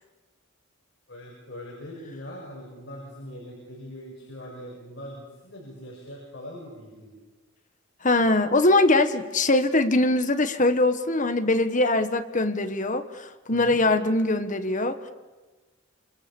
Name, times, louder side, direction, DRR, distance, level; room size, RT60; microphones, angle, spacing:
voice 1, 1.1-7.1 13.5-13.8, equal, 55° left, -2 dB, 6.9 m, -41 dB
voice 2, 8.0-15.0, left 2 dB, 35° left, 8 dB, 1.5 m, -22 dB
28.0 x 25.5 x 7.1 m, 1.2 s
head